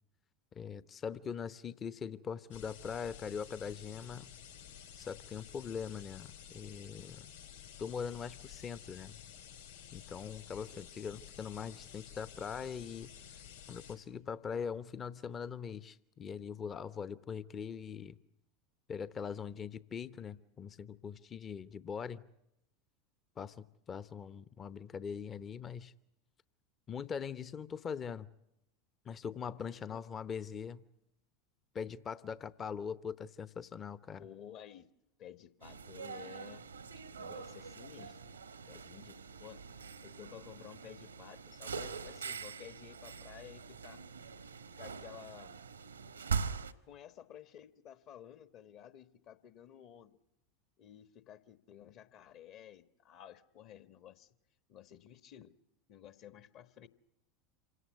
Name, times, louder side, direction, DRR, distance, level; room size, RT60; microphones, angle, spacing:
voice 1, 0.5-4.3 5.0-7.3 7.8-9.2 9.9-13.1 13.7-18.2 18.9-22.2 23.4-23.6 23.9-25.9 26.9-28.3 29.0-30.8 31.7-34.2, left 6 dB, 30° left, 17 dB, 0.8 m, -42 dB
sound 1, 2.5-14.0, left 9 dB, 75° left, 6.2 m, -52 dB
voice 2, 34.2-34.9 35.2-36.7 37.2-39.6 40.0-44.0 44.8-45.7 46.2-46.3 46.8-50.2 50.8-54.4 54.7-55.6 55.9-56.9, left 10 dB, 45° left, 13 dB, 1.3 m, -53 dB
sound 2, 35.6-46.7, right 6 dB, 80° right, 1.0 m, -43 dB
27.0 x 17.5 x 8.2 m, 0.85 s
figure-of-eight pair, 80°, 0 cm